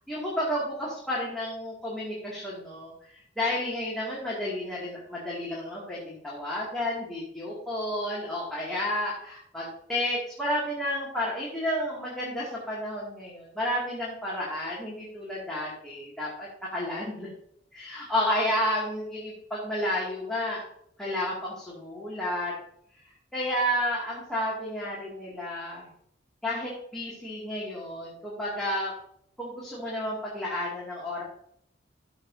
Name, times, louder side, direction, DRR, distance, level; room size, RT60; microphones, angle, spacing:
voice 1, 0.1-17.3 17.7-20.6 21.0-22.5 23.3-25.9 26.4-28.9 29.4-31.2, left 1 dB, ahead, -7 dB, 2.4 m, -31 dB
13.5 x 7.0 x 2.8 m, 0.71 s
head